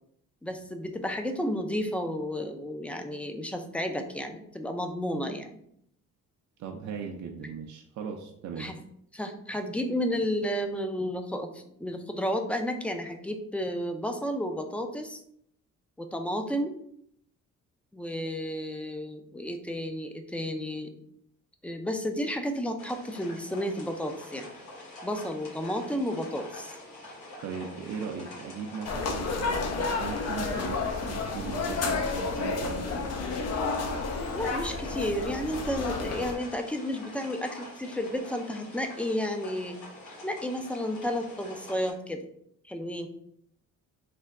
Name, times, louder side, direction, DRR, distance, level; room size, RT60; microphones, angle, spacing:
voice 1, 0.4-5.6 8.6-8.7 9.1-15.2 16.0-16.8 17.9-20.9 21.6-24.5 25.0-26.7 34.3-39.8 40.2-42.3 42.6-43.1, equal, 5° left, 5 dB, 0.4 m, -32 dB
voice 2, 6.6-8.7 27.4-33.1, right 6 dB, 65° right, 2 dB, 0.5 m, -38 dB
sound 1, 22.8-41.9, left 1 dB, 80° left, 1.2 m, -46 dB
sound 2, 28.8-36.3, left 4 dB, 55° left, 0.6 m, -31 dB
3.3 x 2.2 x 3.6 m, 0.69 s
cardioid pair, 90°, 30 cm